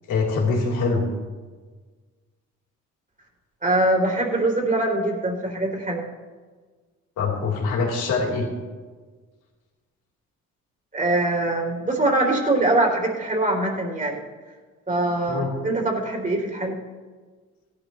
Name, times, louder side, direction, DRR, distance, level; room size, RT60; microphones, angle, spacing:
voice 1, 0.1-1.0 7.2-8.5 15.3-15.5, left 4 dB, 85° left, -2 dB, 3.4 m, -23 dB
voice 2, 3.6-6.1 10.9-14.2 14.9-16.7, right 2 dB, 25° right, 0 dB, 3.2 m, -23 dB
17.0 x 11.5 x 3.1 m, 1.4 s
cardioid pair, 90°, 30 cm